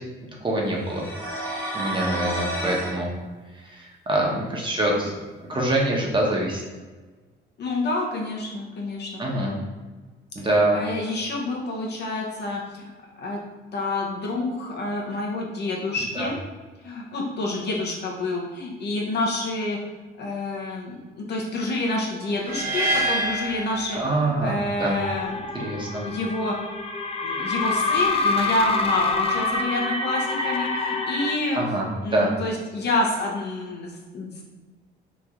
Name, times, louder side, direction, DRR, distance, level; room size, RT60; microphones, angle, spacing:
voice 1, 0.4-1.0 1.4-3.1 3.6-5.1 5.5-6.6 9.2-9.6 10.3-10.8 16.1-16.3 23.9-25.0 25.5-26.0 31.5-32.3, right 1 dB, 25° right, -3 dB, 0.9 m, -25 dB
sound 1, 0.8-3.0, right 1 dB, 10° left, 1.0 m, -30 dB
voice 2, 7.6-9.3 10.7-12.9 13.2-13.4 13.7-16.4 16.8-19.8 20.2-26.5 27.2-31.6 32.0-34.4, left 2 dB, 60° left, -1 dB, 0.9 m, -28 dB
sound 2, 22.4-24.6, right 1 dB, 45° right, 1.0 m, -27 dB
sound 3, 25.0-31.4, left 3 dB, 30° left, 0.4 m, -26 dB
3.1 x 2.6 x 3.7 m, 1.3 s
cardioid pair, 90°, 20 cm